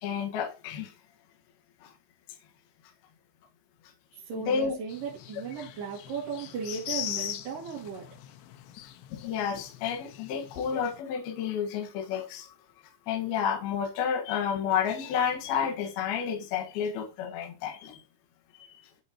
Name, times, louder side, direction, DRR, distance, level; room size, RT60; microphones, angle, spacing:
voice 1, 0.0-0.9 1.8-1.9 4.3-4.8 9.1-12.5 13.1-18.0 18.5-18.7, left 7 dB, 65° left, 3.0 m, -30 dB
voice 2, 4.2-8.1, right 6 dB, 50° right, 3.6 m, -36 dB
sound 1, 4.9-11.0, left 12 dB, 85° left, 3.3 m, -40 dB
11.0 x 4.3 x 4.3 m
omnidirectional pair, 5.5 m